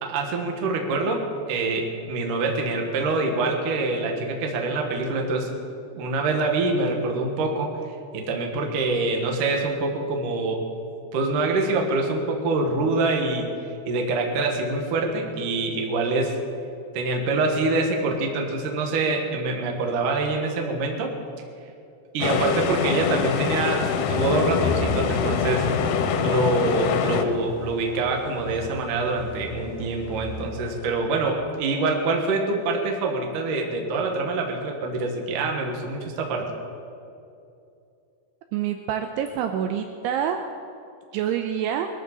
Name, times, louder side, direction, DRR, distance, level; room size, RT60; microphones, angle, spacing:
voice 1, 0.0-5.5 5.9-7.8 8.1-10.6 11.1-13.5 13.9-16.4 16.9-21.1 22.1-25.7 26.2-36.5, right 3 dB, 60° right, 2 dB, 2.5 m, -25 dB
sound 1, 22.2-27.3, left 7 dB, 90° left, 3.3 m, -24 dB
sound 2, 24.1-30.9, left 2 dB, 70° left, 4.6 m, -34 dB
voice 2, 38.5-40.4 41.1-41.9, right 9 dB, 85° right, 6 dB, 2.5 m, -26 dB
21.5 x 13.5 x 4.1 m, 2.6 s
omnidirectional pair, 5.2 m